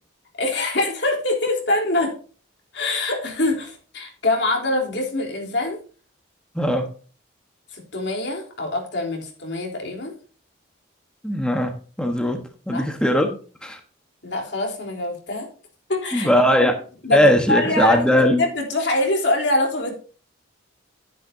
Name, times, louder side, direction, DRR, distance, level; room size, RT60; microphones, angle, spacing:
voice 1, 0.4-2.1 2.7-5.8 7.7-10.1 12.7-12.9 14.2-15.5 15.9-16.3 16.6-16.7 17.0-20.0, left 2 dB, 60° left, 2 dB, 3.5 m, -24 dB
voice 2, 6.5-6.9 11.2-13.8 16.1-16.7 17.1-18.5, equal, 5° left, 3 dB, 1.2 m, -19 dB
11.5 x 10.0 x 2.7 m, 0.39 s
head